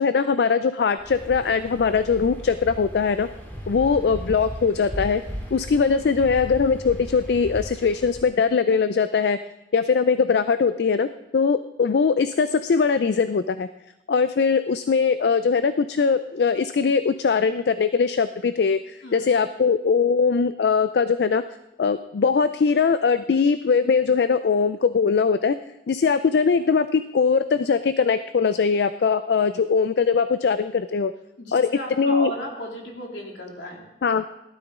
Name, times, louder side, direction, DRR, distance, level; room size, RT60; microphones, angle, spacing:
voice 1, 0.0-3.3 3.7-5.2 5.5-9.4 9.7-11.1 11.3-13.7 14.1-18.8 19.1-21.4 21.8-25.5 25.9-31.1 31.5-31.7 32.0-32.3 34.0-34.2, left 5 dB, 65° left, 12 dB, 0.4 m, -21 dB
Waves surf, 1.0-8.3, equal, 10° left, 2.5 m, -37 dB
voice 2, 5.9-6.4 19.0-19.3 31.4-33.8, equal, 85° left, -1 dB, 3.1 m, -35 dB
17.5 x 12.0 x 3.7 m, 0.92 s
head